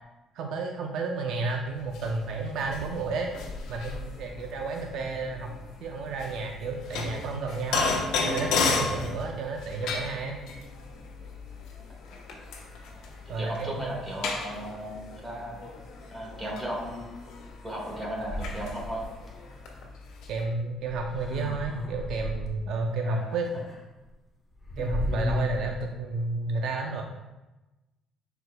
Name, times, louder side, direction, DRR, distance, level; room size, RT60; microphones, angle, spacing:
voice 1, 0.3-3.3 3.7-5.5 5.8-7.9 8.2-10.4 13.3-14.0 20.3-23.5 24.8-27.0, right 3 dB, 65° right, 2 dB, 0.6 m, -31 dB
sound 1, 1.8-20.4, left 4 dB, 85° left, 1.0 m, -34 dB
sound 2, 2.4-19.8, left 3 dB, 70° left, 1.5 m, -51 dB
voice 2, 13.2-15.6 16.1-17.2 17.6-19.0 23.0-23.4, right 1 dB, 10° right, -3 dB, 1.7 m, -36 dB
sound 3, 18.2-19.3 20.8-22.6 23.4-23.8 24.1-24.2 24.5-25.8, left 2 dB, 10° left, 1.0 m, -33 dB
10.5 x 4.5 x 2.2 m, 1.1 s
cardioid pair, 160°, 0 cm